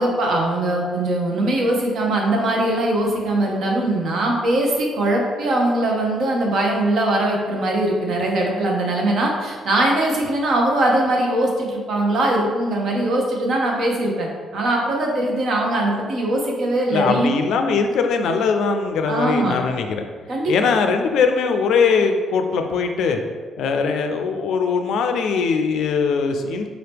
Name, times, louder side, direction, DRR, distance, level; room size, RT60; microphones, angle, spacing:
voice 1, 0.0-17.3 19.1-19.6 20.3-20.7, right 1 dB, 65° right, -1 dB, 0.9 m, -21 dB
voice 2, 16.9-20.1 20.5-23.2 23.6-26.7, left 5 dB, 75° left, 6 dB, 0.4 m, -21 dB
4.0 x 2.9 x 3.4 m, 1.5 s
cardioid pair, 90°, 0 cm